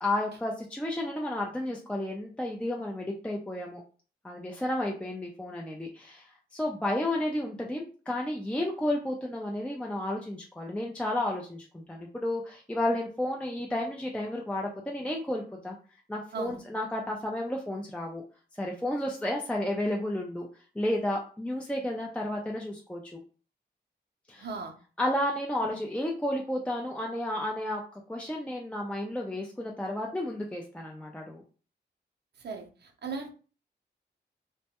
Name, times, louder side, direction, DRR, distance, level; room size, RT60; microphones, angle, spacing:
voice 1, 0.0-3.8 4.2-15.8 16.1-18.2 18.6-20.5 20.8-23.0 24.3-24.5 25.0-31.4, left 1 dB, 5° left, -1 dB, 0.4 m, -32 dB
voice 2, 24.4-24.8 32.4-33.3, right 4 dB, 65° right, 3 dB, 0.6 m, -37 dB
2.2 x 2.1 x 2.8 m, 0.38 s
cardioid pair, 75°, 18 cm